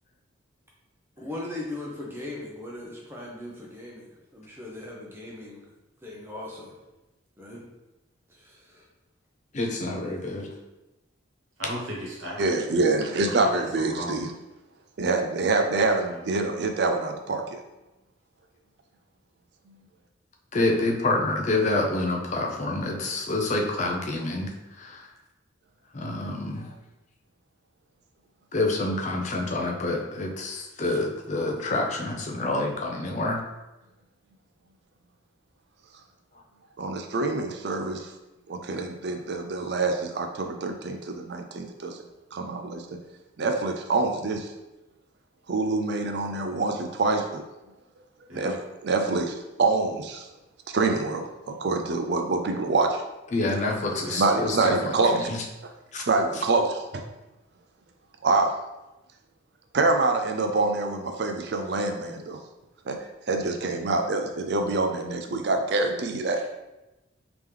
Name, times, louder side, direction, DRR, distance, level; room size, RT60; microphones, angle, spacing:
voice 1, 1.2-5.7 6.0-6.7 7.4-7.7 8.3-8.9, left 2 dB, 10° right, -3 dB, 0.7 m, -39 dB
voice 2, 9.5-10.5 20.5-24.5 24.8-25.1 25.9-26.7 28.5-33.4 53.3-55.4 55.9-56.0, left 2 dB, 35° left, 1 dB, 0.5 m, -27 dB
voice 3, 11.6-12.6 13.0-14.2 16.1-16.2 48.3-48.6 54.0-54.3 66.3-66.4, equal, 85° right, -3 dB, 1.2 m, -37 dB
voice 4, 12.4-14.3 15.0-17.4 36.8-38.1 38.5-42.0 42.3-42.8 43.4-44.5 45.5-47.4 48.3-48.6 48.8-50.3 50.7-53.0 54.2-55.3 56.1-57.0 58.2-58.5 59.7-62.4 62.9-63.0 63.3-66.4, right 3 dB, 55° right, 5 dB, 0.4 m, -26 dB
3.6 x 2.9 x 3.3 m, 1.0 s
head